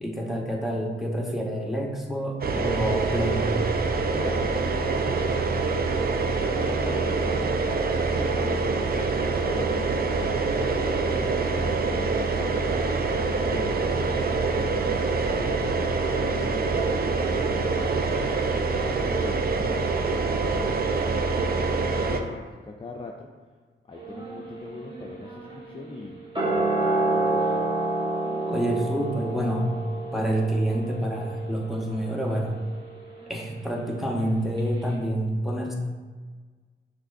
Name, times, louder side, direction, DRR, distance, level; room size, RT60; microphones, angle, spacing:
voice 1, 0.0-3.6 28.5-29.7 30.1-32.6 33.3-35.7, right 1 dB, ahead, -1 dB, 0.9 m, -27 dB
sound 1, 2.4-22.2, right 4 dB, 45° right, 0.5 m, -25 dB
voice 2, 3.1-3.5 4.1-5.2 5.8-12.7 13.4-17.9 18.1-19.8 20.3-21.0 21.3-23.3 23.9-27.7, left 3 dB, 25° left, -1 dB, 0.5 m, -41 dB
sound 2, 23.9-34.3 34.6-34.7, right 2 dB, 20° right, 1.2 m, -30 dB
6.0 x 3.0 x 2.6 m, 1.4 s
cardioid pair, 55°, 21 cm